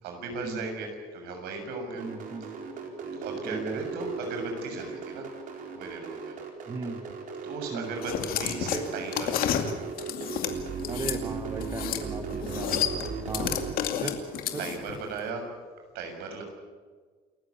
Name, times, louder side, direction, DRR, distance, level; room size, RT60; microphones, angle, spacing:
voice 1, 0.0-2.0 3.1-5.3 5.8-6.4 7.4-8.1 8.4-9.7 12.5-13.0 14.2-14.3 14.6-15.4 15.9-16.4, right 4 dB, 80° right, 4 dB, 7.0 m, -37 dB
voice 2, 1.9-2.5 3.4-3.8 6.7-7.0 7.7-7.9 10.9-13.5 14.0-14.2 14.5-14.6, right 4 dB, 20° right, 7 dB, 1.4 m, -37 dB
sound 1, 2.0-13.7, right 5 dB, 55° right, 4.5 m, -37 dB
sound 2, 8.0-11.2 11.6-12.1 12.3-15.0, left 9 dB, 65° left, 2.4 m, -30 dB
28.5 x 14.5 x 8.7 m, 1.5 s
cardioid pair, 145°, 16 cm